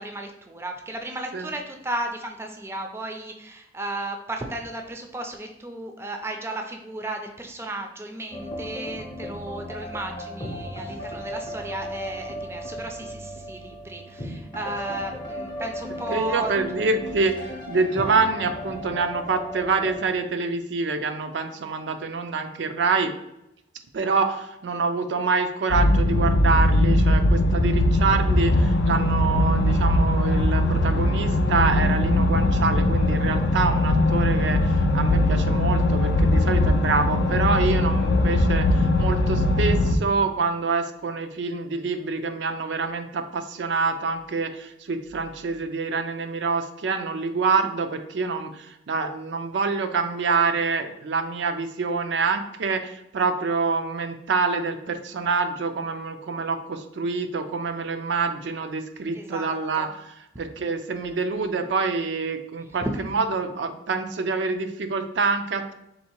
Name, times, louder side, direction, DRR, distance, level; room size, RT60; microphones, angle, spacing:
voice 1, 0.0-16.5 59.1-59.9 62.8-63.0, right 2 dB, 15° right, 3 dB, 0.4 m, -34 dB
sound 1, 8.3-20.1, equal, 25° left, 0.6 m, -36 dB
voice 2, 16.1-23.1 23.9-65.7, right 4 dB, 75° right, 7 dB, 0.4 m, -26 dB
sound 2, 25.7-40.0, left 1 dB, 65° left, 0.4 m, -20 dB
3.6 x 2.7 x 4.3 m, 0.82 s
head